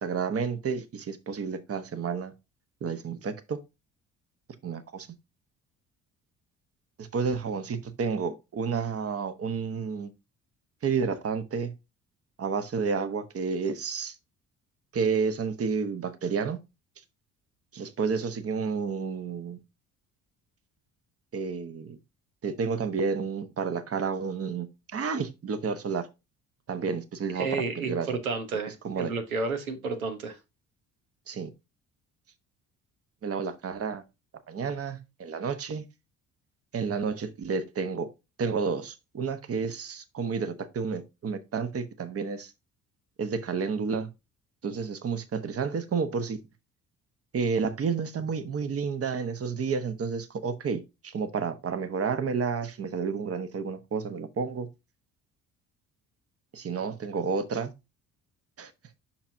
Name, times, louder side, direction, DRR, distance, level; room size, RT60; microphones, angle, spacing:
voice 1, 0.0-2.3 2.8-3.6 4.6-5.1 7.0-10.1 10.8-11.7 12.4-14.1 14.9-16.6 17.7-19.6 21.3-22.0 22.4-24.7 24.9-26.1 26.7-28.1 28.8-29.1 31.3-31.5 33.2-34.0 34.5-35.8 36.7-38.1 38.4-42.5 43.2-44.1 44.6-46.4 47.3-54.7 56.5-57.7 58.6-58.7, right 5 dB, 35° right, 1.1 m, -30 dB
voice 2, 27.3-30.4, right 4 dB, 85° right, 1.0 m, -31 dB
7.0 x 5.9 x 2.7 m
figure-of-eight pair, 50°, 41 cm